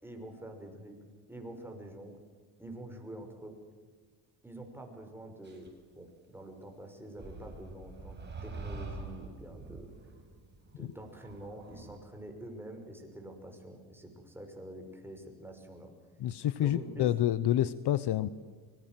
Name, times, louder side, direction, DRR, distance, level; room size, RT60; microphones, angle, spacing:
voice 1, 0.0-2.2 2.6-3.6 4.4-9.9 10.8-15.9 16.6-17.2, right 1 dB, 5° right, 3 dB, 5.9 m, -46 dB
sound 1, 5.4-5.7 7.2-12.0, right 3 dB, 20° right, 7.5 m, -45 dB
voice 2, 16.2-18.3, left 12 dB, 55° left, 16 dB, 0.9 m, -28 dB
24.5 x 21.0 x 7.7 m, 1.4 s
cardioid pair, 100°, 47 cm